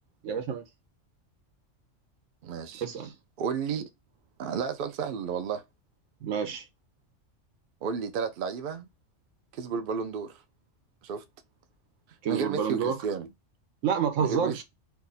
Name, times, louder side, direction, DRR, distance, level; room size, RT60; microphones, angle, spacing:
voice 1, 0.2-0.6 2.8-3.1 6.2-6.6 12.2-13.0 13.8-14.6, right 7 dB, 85° right, 1.1 m, -28 dB
voice 2, 2.4-2.8 3.4-3.9 4.4-5.6 7.8-8.9 9.5-10.4 11.0-11.2 12.3-13.3 14.2-14.5, right 6 dB, 60° right, 0.6 m, -32 dB
2.7 x 2.4 x 3.9 m
omnidirectional pair, 1.3 m